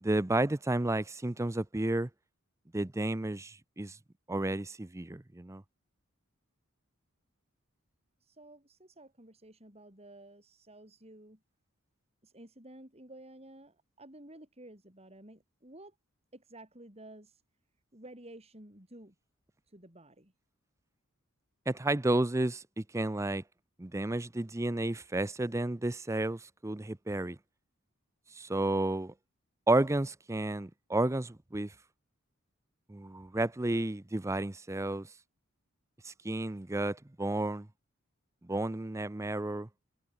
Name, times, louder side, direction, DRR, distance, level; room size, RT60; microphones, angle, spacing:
voice 1, 0.0-2.1 2.7-4.0 4.3-5.6 21.7-22.6 22.9-23.4 23.8-27.4 28.4-29.1 29.7-31.7 32.9-35.1 36.1-37.7 38.4-39.7, right 2 dB, 15° right, 0.6 m, -31 dB
voice 2, 8.2-11.4 12.2-16.0 16.3-17.4 17.9-19.1 19.7-20.3, right 1 dB, 30° right, 7.9 m, -52 dB
head